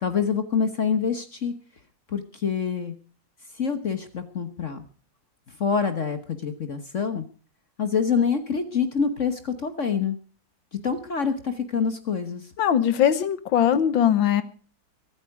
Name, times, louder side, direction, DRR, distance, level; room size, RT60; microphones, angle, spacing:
voice 1, 0.0-1.5 2.1-2.9 3.5-4.8 5.6-7.2 7.8-10.2 10.8-12.5, left 6 dB, 45° left, 9 dB, 1.3 m, -26 dB
voice 2, 12.6-14.4, left 9 dB, 75° left, 14 dB, 1.8 m, -20 dB
23.0 x 9.3 x 4.8 m, 0.39 s
omnidirectional pair, 2.2 m